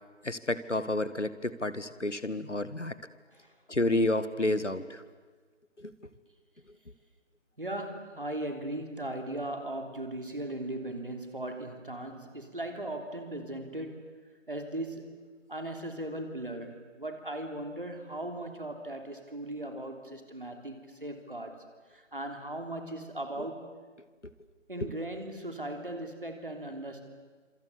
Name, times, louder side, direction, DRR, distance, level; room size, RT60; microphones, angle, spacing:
voice 1, 0.2-3.0 3.7-5.0 5.8-5.9 24.8-24.9, left 2 dB, 65° left, 14 dB, 1.9 m, -30 dB
voice 2, 7.6-14.0 14.5-15.1 15.5-21.6 21.9-23.7 24.7-27.0, right 1 dB, 45° right, 5 dB, 3.4 m, -38 dB
26.5 x 26.0 x 8.3 m, 1.4 s
figure-of-eight pair, 170°, 38 cm